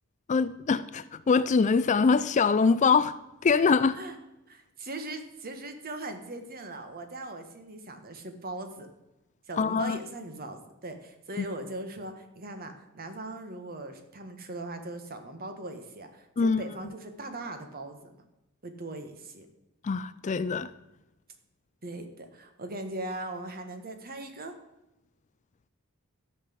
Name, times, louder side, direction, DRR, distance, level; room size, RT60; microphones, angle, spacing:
voice 1, 0.3-3.2 3.4-4.0 9.6-10.0 11.4-11.5 16.4-16.6 19.8-20.7, left 5 dB, 35° left, 15 dB, 0.4 m, -24 dB
voice 2, 4.5-8.9 9.5-18.2 18.6-19.5 21.8-24.6, right 2 dB, 45° right, 7 dB, 1.5 m, -40 dB
13.0 x 5.9 x 7.7 m, 0.94 s
head